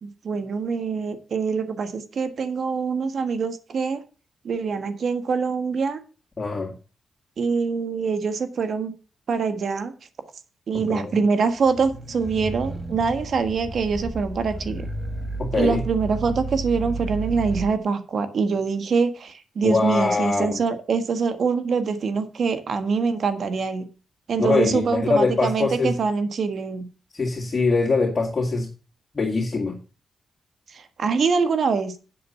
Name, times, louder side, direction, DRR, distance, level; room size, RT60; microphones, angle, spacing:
voice 1, 0.0-4.0 4.4-6.0 7.4-8.9 9.3-9.9 10.7-14.8 15.6-23.9 24.3-26.9 30.7-31.9, right 5 dB, 70° right, 9 dB, 1.6 m, -24 dB
voice 2, 6.4-6.7 10.9-11.1 15.4-15.8 19.6-20.6 24.4-25.9 27.1-28.7 29.1-29.8, left 3 dB, 40° left, -2 dB, 2.3 m, -23 dB
sound 1, 11.7-17.8, right 2 dB, 20° right, 1.5 m, -32 dB
7.8 x 6.9 x 7.0 m, 0.36 s
cardioid pair, 65°, 0 cm